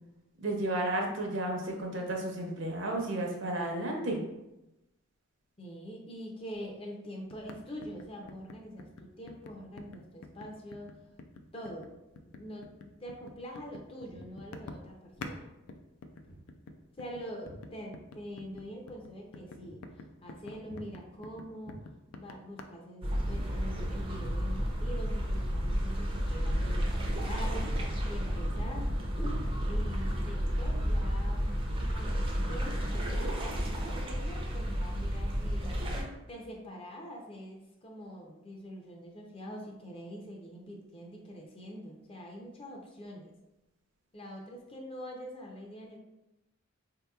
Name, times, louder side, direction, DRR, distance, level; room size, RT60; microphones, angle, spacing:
voice 1, 0.4-4.2, right 1 dB, 60° right, 1 dB, 0.7 m, -32 dB
voice 2, 5.6-10.9 11.5-11.9 12.2-15.5 17.0-19.8 20.2-21.8 22.1-31.5 31.9-32.8 33.1-35.7 36.3-43.3 44.1-46.0, equal, 25° left, 0 dB, 0.5 m, -44 dB
sound 1, 7.3-15.4 15.7-22.6, left 3 dB, 85° left, 0.4 m, -48 dB
Walk footsteps, 14.0-14.3 15.2-15.4 16.2-16.5 16.8-18.2 18.5-18.7 19.1-19.3 19.6-19.8 20.1-20.4 20.6-20.9 21.6-22.3, equal, 50° left, 1.0 m, -51 dB
sound 2, 23.0-36.0, equal, 25° right, 0.4 m, -31 dB
4.3 x 2.8 x 2.3 m, 0.95 s
head